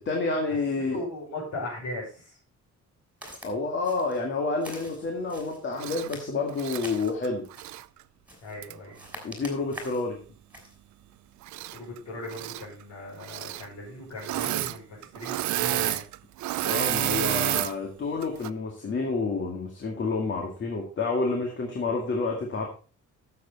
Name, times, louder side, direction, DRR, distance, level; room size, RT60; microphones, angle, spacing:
voice 1, 0.1-1.0 3.4-7.4 9.2-10.2 16.6-22.7, left 3 dB, 40° left, 1 dB, 2.0 m, -29 dB
voice 2, 0.9-2.4 8.4-9.0 11.7-16.0, left 1 dB, 65° left, -7 dB, 5.8 m, -38 dB
Walk footsteps, 3.2-3.5 3.8-4.2 4.6-5.6 6.0-7.2 7.5-7.9 8.3-8.6 8.9-10.1 10.5-10.8, right 1 dB, 5° right, 3.2 m, -44 dB
Engine / Mechanisms, 5.8-6.1 6.5-7.8 8.6-8.7 11.4-12.0 12.2-12.6 13.2-13.7 14.2-14.8 15.0-17.7 18.2-18.5, right 15 dB, 80° right, 0.5 m, -30 dB
13.0 x 7.2 x 4.0 m, 0.37 s
cardioid pair, 155°, 29 cm